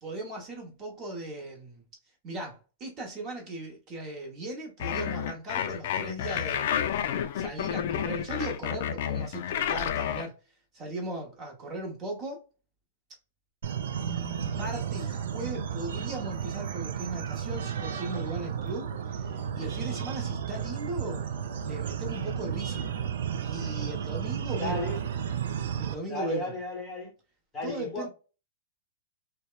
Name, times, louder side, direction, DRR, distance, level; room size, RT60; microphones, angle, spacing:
voice 1, 0.0-1.8 2.2-10.3 10.7-12.4 14.0-21.3 21.6-22.9 23.4-24.9 25.8-26.5 27.6-28.1, right 1 dB, 30° right, 0.9 m, -38 dB
sound 1, 4.8-10.3, left 9 dB, 55° left, 0.3 m, -30 dB
sound 2, 13.6-25.9, right 8 dB, 70° right, 0.4 m, -33 dB
voice 2, 24.6-25.1 26.1-27.1 27.5-28.1, left 1 dB, 15° left, 0.9 m, -34 dB
2.8 x 2.1 x 2.2 m
hypercardioid pair, 155°, 0 cm